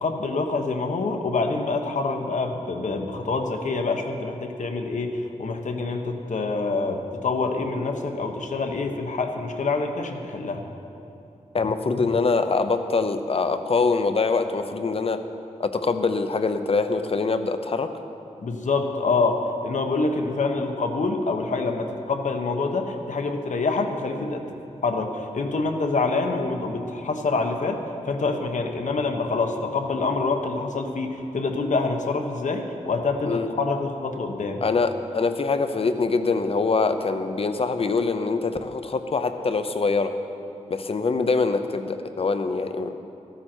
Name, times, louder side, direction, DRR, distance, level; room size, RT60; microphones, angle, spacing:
voice 1, 0.0-10.6 18.4-24.4 24.8-34.6, left 3 dB, 70° left, 4 dB, 1.1 m, -26 dB
voice 2, 11.5-15.2 15.6-17.9 33.3-33.5 34.6-40.1 40.7-43.0, left 4 dB, 50° left, 9 dB, 0.7 m, -24 dB
14.0 x 12.5 x 4.5 m, 2.8 s
wide cardioid pair, 115°, 13 cm